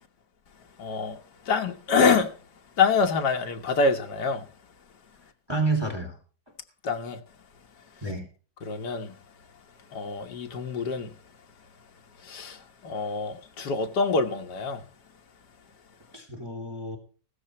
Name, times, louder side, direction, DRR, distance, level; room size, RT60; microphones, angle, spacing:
voice 1, 0.8-1.2 1.5-2.4 2.8-4.5 6.8-7.2 8.6-9.2 9.9-11.2 12.2-14.8, left 4 dB, 60° left, 2.0 m, -26 dB
voice 2, 5.5-6.2 8.0-8.3 16.1-17.0, right 3 dB, 10° right, 2.8 m, -29 dB
16.0 x 14.0 x 3.1 m
omnidirectional pair, 2.1 m